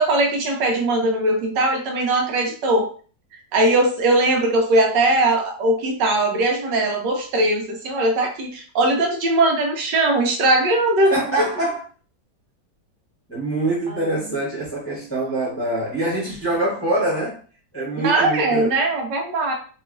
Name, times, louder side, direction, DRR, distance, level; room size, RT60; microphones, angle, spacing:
voice 1, 0.0-2.9 3.5-11.5 13.9-14.0 18.0-19.5, right 2 dB, 75° right, 2 dB, 1.3 m, -20 dB
voice 2, 11.0-11.8 13.3-17.4 17.7-18.7, right 2 dB, 10° left, -7 dB, 0.9 m, -24 dB
3.0 x 3.0 x 2.4 m, 0.41 s
omnidirectional pair, 2.0 m